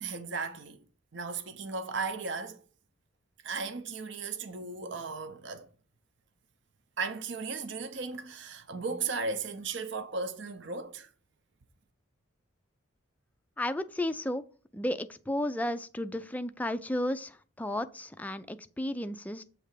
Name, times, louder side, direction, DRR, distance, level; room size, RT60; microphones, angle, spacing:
voice 1, 0.0-0.8 1.1-2.6 3.4-5.7 7.0-11.1, right 4 dB, 55° right, 0.7 m, -36 dB
voice 2, 13.6-14.4 14.7-19.4, left 1 dB, 5° left, 0.3 m, -33 dB
8.3 x 3.3 x 6.5 m
head